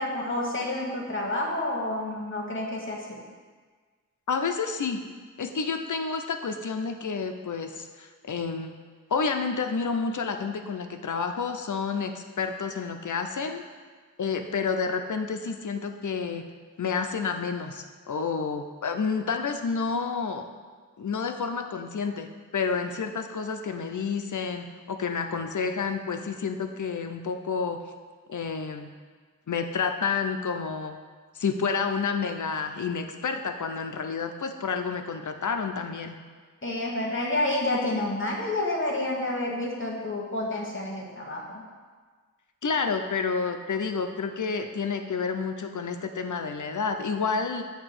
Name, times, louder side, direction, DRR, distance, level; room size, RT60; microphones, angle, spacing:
voice 1, 0.0-3.2 36.6-41.6, left 1 dB, 40° left, -2 dB, 1.4 m, -29 dB
voice 2, 4.3-5.0 5.4-8.8 9.1-13.6 14.2-16.5 16.8-20.5 21.0-22.3 22.5-27.8 28.3-28.9 29.5-31.0 31.3-36.2 42.6-47.6, left 5 dB, 65° left, 6 dB, 0.6 m, -29 dB
7.9 x 2.9 x 6.0 m, 1.5 s
wide cardioid pair, 50°, 32 cm